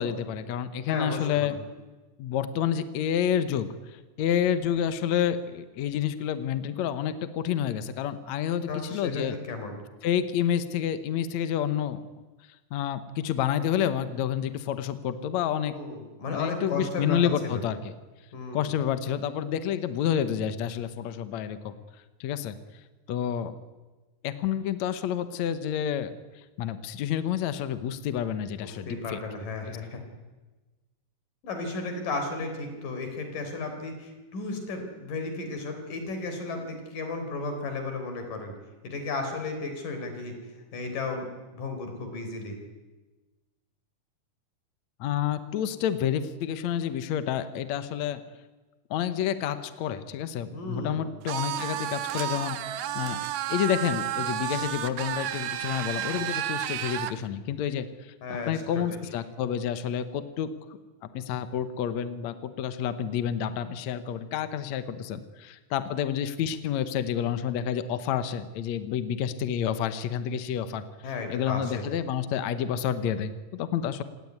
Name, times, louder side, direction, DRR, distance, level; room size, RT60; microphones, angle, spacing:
voice 1, 0.0-1.6 2.2-9.4 10.0-12.0 12.7-15.7 16.3-17.8 18.5-21.7 22.2-22.6 23.1-23.5 24.2-29.2 29.7-29.8 45.0-48.2 48.9-53.2 53.5-58.1 58.5-60.5 61.1-70.8 71.3-74.0, left 9 dB, 70° left, 11 dB, 2.2 m, -29 dB
voice 2, 0.9-1.6 8.7-9.8 15.6-17.6 18.3-18.7 28.9-30.0 31.4-38.5 38.8-40.3 40.7-42.6 50.5-51.1 58.2-58.8 71.0-71.9, left 3 dB, 90° left, 5 dB, 5.6 m, -34 dB
sound 1, 51.3-57.2, right 11 dB, 70° right, 2.3 m, -31 dB
27.0 x 18.0 x 9.6 m, 1.2 s
omnidirectional pair, 3.7 m